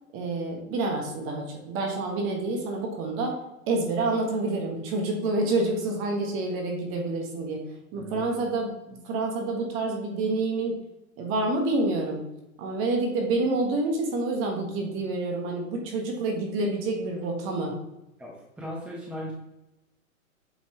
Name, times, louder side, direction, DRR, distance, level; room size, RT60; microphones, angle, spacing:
voice 1, 0.1-3.4 3.7-7.6 7.9-10.8 11.2-12.2 12.6-17.7, right 2 dB, 30° right, 1 dB, 1.3 m, -28 dB
voice 2, 8.0-8.4 18.2-19.3, equal, 5° right, -3 dB, 1.1 m, -38 dB
8.0 x 4.3 x 2.9 m, 0.92 s
hypercardioid pair, 120°, 42 cm